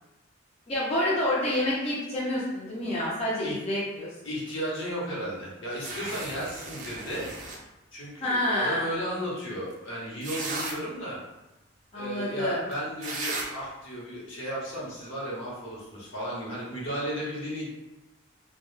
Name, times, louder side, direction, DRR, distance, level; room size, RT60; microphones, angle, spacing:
voice 1, 0.7-4.1 8.2-8.9 11.9-12.6, left 1 dB, 30° left, -8 dB, 0.4 m, -28 dB
voice 2, 4.2-7.3 7.9-11.2 11.9-17.7, equal, 65° left, -6 dB, 0.8 m, -34 dB
sound 1, 5.8-7.6 9.7-9.8 10.2-10.7 12.7-12.8 13.0-13.4, right 3 dB, 35° right, 0.4 m, -35 dB
2.1 x 2.0 x 3.0 m, 0.98 s
head